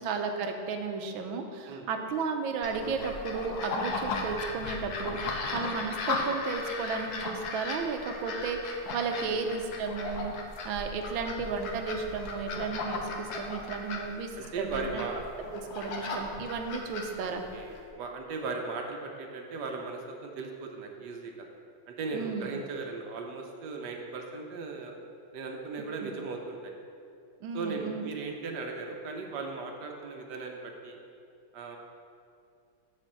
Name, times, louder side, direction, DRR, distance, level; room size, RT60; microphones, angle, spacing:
voice 1, 0.0-10.3 10.6-14.3 14.6-15.0 15.5-17.4 22.1-22.5 26.0-26.1 27.4-28.0, right 4 dB, 85° right, 5 dB, 1.5 m, -34 dB
sound 1, 2.6-17.8, left 3 dB, 60° left, 1.2 m, -36 dB
voice 2, 14.3-15.2 17.2-21.5 21.9-24.9 25.3-26.7 27.5-31.0 31.5-31.8, right 4 dB, 65° right, 2 dB, 1.3 m, -37 dB
7.5 x 4.4 x 6.5 m, 2.4 s
omnidirectional pair, 2.1 m